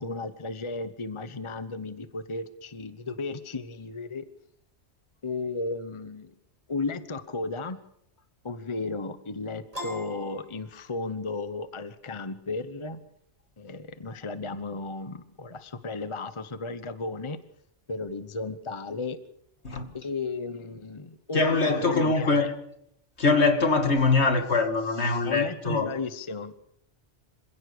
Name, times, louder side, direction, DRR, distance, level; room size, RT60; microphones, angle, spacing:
voice 1, 0.0-4.3 5.2-6.3 6.7-7.8 8.4-13.0 13.6-17.4 17.9-19.2 19.9-22.5 25.2-26.6, left 3 dB, 25° left, 1.0 m, -34 dB
Piano, 9.7-11.3, equal, 30° right, 5.7 m, -40 dB
voice 2, 21.3-22.5 23.2-25.9, left 3 dB, 65° left, 2.4 m, -23 dB
27.0 x 16.5 x 6.8 m
omnidirectional pair, 1.2 m